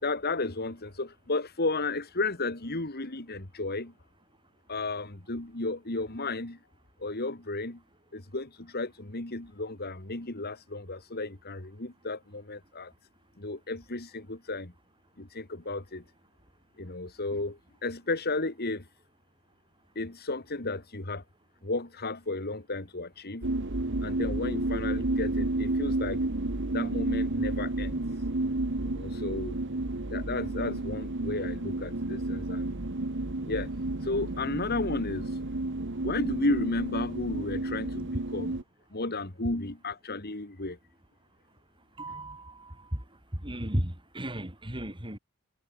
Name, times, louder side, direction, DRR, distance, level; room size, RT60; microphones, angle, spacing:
voice 1, 0.0-3.9 4.7-6.6 7.0-7.8 8.1-12.9 13.4-14.7 15.2-16.0 16.8-18.9 19.9-21.2 21.6-23.5 24.0-26.3 26.7-28.0 28.8-29.6 30.1-32.8 33.4-33.7 34.0-35.3 36.0-38.6 38.9-40.8, left 2 dB, 45° left, 2.7 m, -33 dB
sound 1, 23.4-38.6, right 2 dB, 55° right, 1.5 m, -31 dB
voice 2, 42.0-43.0 43.4-45.2, right 1 dB, 20° right, 4.1 m, -34 dB
head